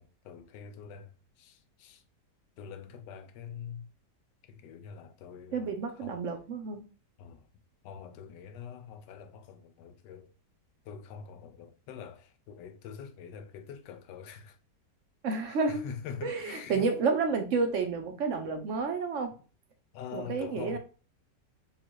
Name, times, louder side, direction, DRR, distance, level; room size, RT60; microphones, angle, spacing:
voice 1, 0.0-2.0 2.6-3.9 4.4-6.2 7.2-7.5 7.8-10.3 10.8-14.6 15.5-16.9 19.9-20.8, left 7 dB, 85° left, 1.2 m, -44 dB
voice 2, 5.5-6.8 15.2-15.8 16.2-19.3 20.1-20.8, right 4 dB, 60° right, 0.9 m, -30 dB
3.8 x 2.4 x 4.5 m
omnidirectional pair, 1.8 m